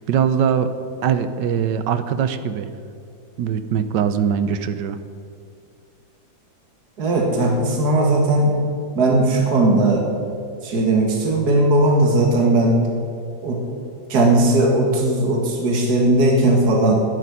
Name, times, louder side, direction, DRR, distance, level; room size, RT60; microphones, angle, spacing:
voice 1, 0.1-0.7 1.0-2.7 3.4-5.0, right 8 dB, 75° right, 11 dB, 1.4 m, -21 dB
voice 2, 7.0-8.5 8.9-10.0 10.6-12.8 13.4-13.6 14.1-17.0, right 2 dB, 60° right, -1 dB, 2.4 m, -17 dB
12.5 x 7.8 x 10.0 m, 2.3 s
omnidirectional pair, 2.0 m